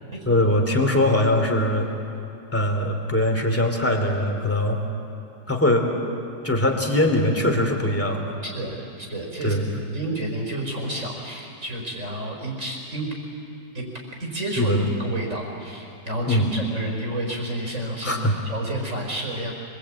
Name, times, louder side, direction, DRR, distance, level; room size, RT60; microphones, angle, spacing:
voice 1, 0.2-1.9 2.5-4.8 5.5-5.9 6.4-8.3 9.4-9.7 14.6-14.9 16.3-16.6 18.0-18.4, left 1 dB, 5° left, 2 dB, 2.7 m, -21 dB
voice 2, 8.4-9.6 9.9-13.1 13.7-13.8 14.2-14.7 15.0-19.5, right 1 dB, 45° right, 0 dB, 5.2 m, -30 dB
25.5 x 21.5 x 8.8 m, 2.6 s
omnidirectional pair, 1.9 m